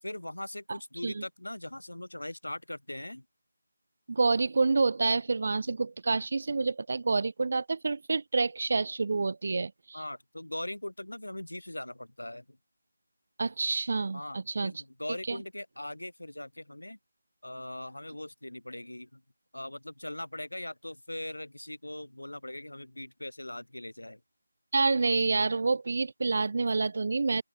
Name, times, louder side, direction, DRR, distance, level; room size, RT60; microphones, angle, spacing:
voice 1, 0.0-3.3 9.9-12.6 14.1-17.0 17.4-19.2 19.5-24.2, left 1 dB, 80° left, 2.9 m, -40 dB
voice 2, 4.1-10.0 13.4-14.7 15.3-15.4 24.7-27.4, right 4 dB, 50° right, 0.8 m, -28 dB
open air
figure-of-eight pair, 160°, 0 cm